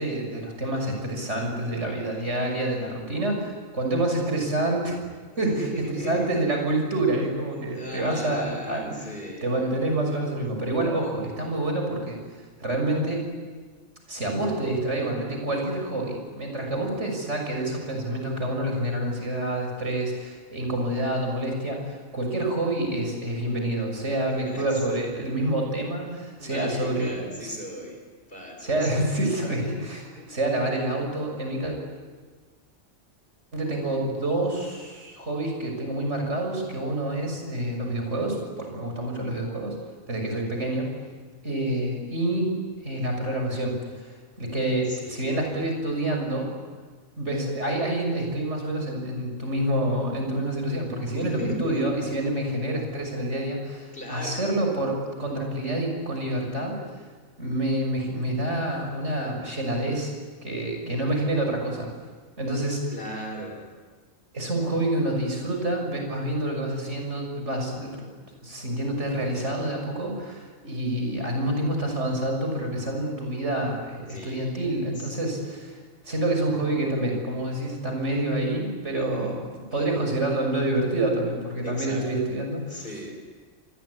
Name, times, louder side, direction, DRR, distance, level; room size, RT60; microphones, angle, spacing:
voice 1, 0.0-5.0 5.4-9.1 9.4-12.2 12.6-13.2 14.1-27.6 28.6-31.8 33.5-39.7 40.1-40.9 41.4-42.5 42.8-46.5 47.2-56.8 57.4-60.1 60.4-61.9 62.4-62.8 64.3-68.1 68.4-75.8 76.0-82.9, right 1 dB, 75° right, 2 dB, 6.9 m, -27 dB
voice 2, 5.3-6.3 7.5-9.7 24.4-25.0 26.4-28.0 28.3-29.1 30.2-30.3 44.9-45.5 51.1-51.9 53.9-54.4 62.9-63.7 74.1-74.6 75.0-75.2 78.9-79.3 79.7-80.1 81.6-82.3 82.7-83.2, equal, 50° left, 2 dB, 6.7 m, -36 dB
27.0 x 21.0 x 9.8 m, 1.5 s
omnidirectional pair, 1.2 m